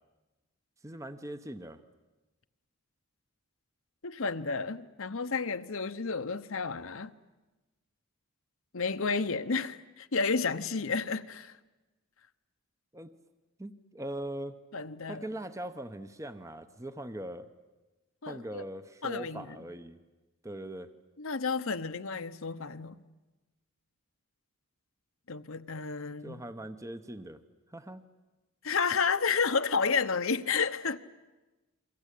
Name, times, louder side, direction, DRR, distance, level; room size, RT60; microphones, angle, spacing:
voice 1, 0.8-1.8 12.9-13.1 13.6-14.6 15.1-17.5 18.3-20.0 20.4-20.9 26.2-27.4 27.7-28.0, right 1 dB, 15° right, 10 dB, 0.9 m, -41 dB
voice 2, 4.0-7.1 8.7-11.6 14.7-15.3 18.2-18.6 19.0-19.6 21.2-23.0 25.3-26.4 28.6-31.0, left 5 dB, 65° left, 10 dB, 1.0 m, -31 dB
28.5 x 24.0 x 8.4 m, 1.1 s
head